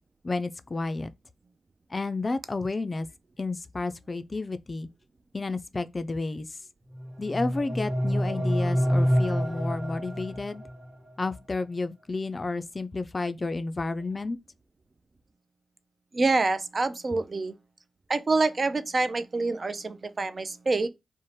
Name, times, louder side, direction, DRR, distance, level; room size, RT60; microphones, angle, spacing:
voice 1, 0.2-1.1 1.9-3.1 3.4-4.9 5.3-6.6 7.2-10.6 11.2-14.4, left 3 dB, 40° left, 0.3 m, -31 dB
sound 1, 6.9-10.9, equal, 20° right, 0.8 m, -27 dB
voice 2, 16.1-17.5 18.1-20.9, right 3 dB, 50° right, 0.3 m, -26 dB
2.6 x 2.1 x 3.0 m
cardioid pair, 45°, 0 cm